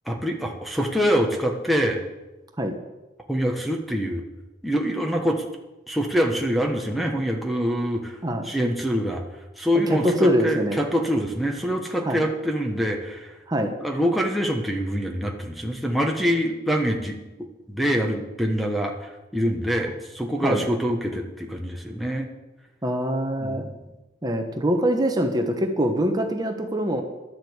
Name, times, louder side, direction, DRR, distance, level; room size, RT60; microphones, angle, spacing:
voice 1, 0.1-2.0 3.3-4.2 4.6-5.4 5.9-8.2 8.4-9.2 9.6-13.3 13.8-22.3 23.4-23.7, equal, ahead, 0 dB, 1.2 m, -25 dB
voice 2, 9.9-10.8 12.0-12.2 13.5-13.7 20.4-20.6 22.8-23.6 24.2-27.0, equal, 20° right, 4 dB, 1.2 m, -23 dB
12.0 x 7.7 x 8.1 m, 1.0 s
head